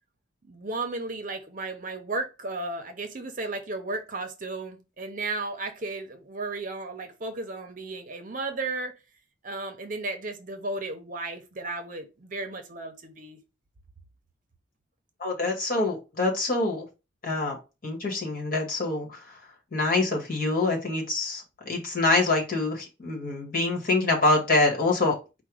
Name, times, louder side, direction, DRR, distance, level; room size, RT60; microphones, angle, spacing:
voice 1, 0.5-8.9 9.4-13.4, right 2 dB, 45° right, 0.7 m, -34 dB
voice 2, 15.2-16.9 17.2-17.6 17.8-19.4 19.7-25.1, left 2 dB, 45° left, 1.6 m, -25 dB
4.6 x 2.3 x 4.8 m
head